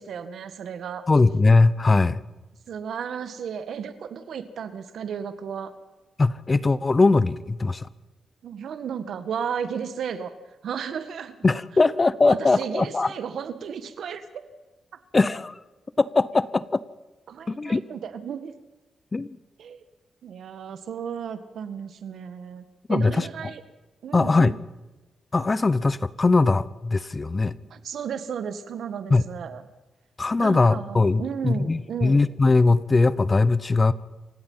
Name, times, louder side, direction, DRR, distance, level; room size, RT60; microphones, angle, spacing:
voice 1, 0.0-1.1 2.7-5.7 8.4-10.3 10.6-11.4 12.3-14.5 17.3-18.5 19.6-19.8 20.2-23.6 24.0-24.5 27.7-29.6 30.4-32.2, right 7 dB, 75° right, 11 dB, 1.8 m, -34 dB
voice 2, 1.1-2.2 6.2-7.9 11.4-13.1 15.1-15.6 16.0-16.8 17.5-17.8 19.1-19.4 22.9-23.3 24.1-24.5 25.3-27.6 29.1-29.2 30.2-33.9, left 3 dB, 30° left, 17 dB, 0.9 m, -20 dB
28.0 x 16.5 x 5.7 m, 1.1 s
cardioid pair, 80°, 0 cm